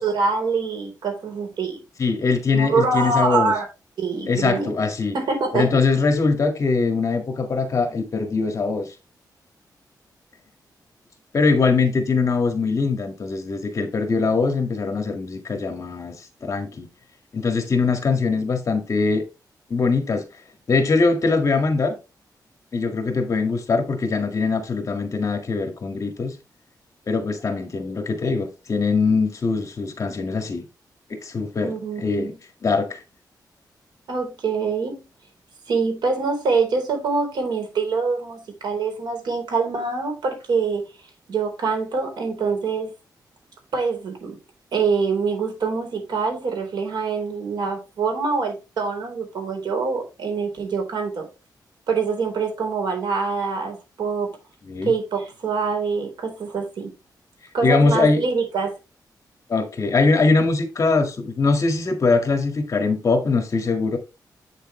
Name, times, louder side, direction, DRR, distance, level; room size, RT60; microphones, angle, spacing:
voice 1, 0.0-1.8 2.5-3.7 4.0-4.7 5.1-5.8 31.6-32.4 34.1-35.0 35.7-40.8 41.3-42.9 43.7-44.4 44.7-51.3 51.9-54.3 54.8-56.9 57.5-58.8, right 4 dB, 85° right, 4.0 m, -25 dB
voice 2, 2.0-3.5 4.3-5.2 5.5-8.9 11.3-16.9 17.3-19.2 19.7-20.2 20.7-22.0 22.7-26.3 27.1-30.6 31.2-32.3 32.6-33.0 54.7-54.9 57.6-58.2 59.5-64.0, left 4 dB, 45° left, 1.8 m, -22 dB
8.6 x 6.7 x 3.2 m
wide cardioid pair, 150°, 7 cm